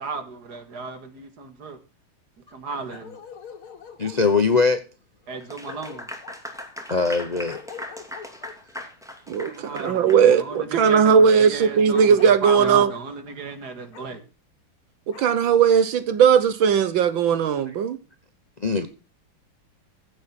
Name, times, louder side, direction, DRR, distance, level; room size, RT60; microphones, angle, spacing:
voice 1, 0.0-1.8 2.5-3.2 5.3-6.1 9.5-14.2, right 4 dB, 50° right, 2.4 m, -34 dB
Bark, 2.9-4.2 5.3-5.4 5.6-6.4 7.5-8.5 9.8-10.9 11.9-12.9 13.9-14.1 15.1-15.3, left 7 dB, 80° left, 2.7 m, -42 dB
voice 2, 4.0-4.8 6.9-7.6 18.6-18.9, left 4 dB, 40° left, 0.5 m, -21 dB
Clapping / Applause, 5.4-10.2, left 1 dB, ahead, 2.4 m, -38 dB
voice 3, 9.3-12.9 15.1-18.0, right 7 dB, 70° right, 1.6 m, -18 dB
15.5 x 7.1 x 5.8 m
omnidirectional pair, 2.3 m